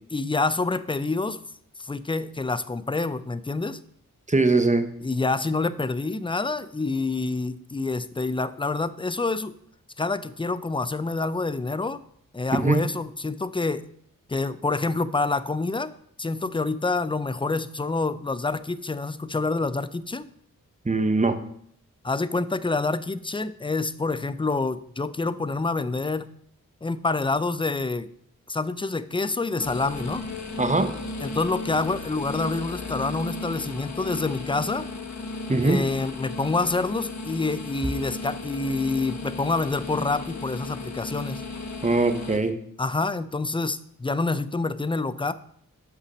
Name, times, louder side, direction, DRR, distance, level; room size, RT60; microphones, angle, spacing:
voice 1, 0.1-1.4 1.8-3.8 5.0-9.5 10.0-12.0 12.3-13.9 14.3-15.9 16.2-20.3 22.0-26.3 26.8-28.1 28.5-30.3 31.2-34.9 35.6-41.4 42.8-45.3, left 3 dB, 15° left, 15 dB, 0.5 m, -27 dB
voice 2, 4.3-4.9 12.6-12.8 20.8-21.4 30.6-30.9 35.5-35.8 41.8-42.5, right 3 dB, 20° right, 8 dB, 1.0 m, -21 dB
sound 1, 29.6-42.4, left 3 dB, 55° left, 1.1 m, -35 dB
6.1 x 5.7 x 6.2 m, 0.67 s
cardioid pair, 45°, 34 cm